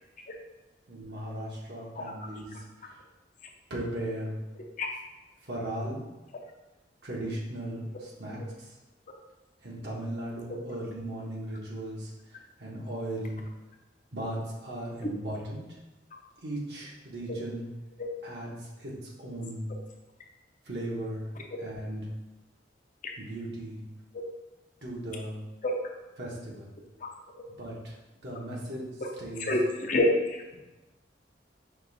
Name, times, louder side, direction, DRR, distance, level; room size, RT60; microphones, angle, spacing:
voice 1, 0.9-3.0 3.7-4.4 5.4-6.0 7.0-8.8 9.6-13.4 14.1-15.8 16.4-17.7 18.2-19.7 20.6-21.3 21.6-22.1 23.2-23.8 24.8-25.4 26.2-26.7 27.6-28.0 28.2-28.9 29.2-29.5, right 1 dB, 65° right, -4 dB, 1.2 m, -37 dB
voice 2, 29.4-30.4, left 1 dB, 45° left, 1 dB, 0.6 m, -26 dB
5.3 x 2.5 x 4.0 m, 1.1 s
head